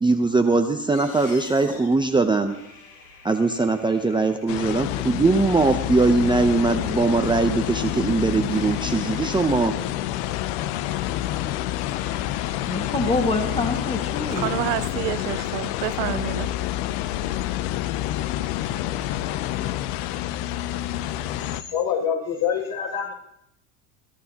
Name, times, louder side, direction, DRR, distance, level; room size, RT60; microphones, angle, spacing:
voice 1, 0.0-2.6 3.2-9.7, right 3 dB, 10° right, 0.7 m, -21 dB
sound 1, 0.9-14.1, left 4 dB, 90° left, 4.3 m, -48 dB
sound 2, 4.5-21.6, left 13 dB, 70° left, 0.8 m, -28 dB
voice 2, 12.7-14.5, left 2 dB, 15° left, 1.9 m, -26 dB
voice 3, 14.3-16.7, right 19 dB, 75° right, 0.7 m, -29 dB
voice 4, 21.3-23.1, left 8 dB, 50° left, 6.4 m, -26 dB
24.0 x 12.0 x 2.9 m
supercardioid pair, 100°, 43 cm